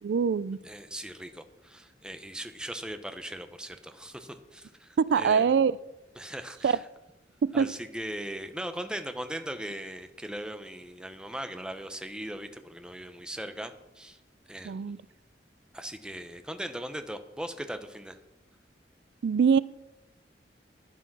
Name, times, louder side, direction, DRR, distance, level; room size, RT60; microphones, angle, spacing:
voice 1, 0.0-0.6 5.0-5.7 6.6-6.8 7.4-7.7 14.7-15.0 19.2-19.6, right 6 dB, 75° right, 19 dB, 0.3 m, -23 dB
voice 2, 0.6-5.6 6.2-6.8 7.5-14.2 14.5-14.8 15.7-18.2, right 1 dB, 5° right, 8 dB, 0.8 m, -39 dB
11.5 x 9.2 x 6.0 m, 0.98 s
head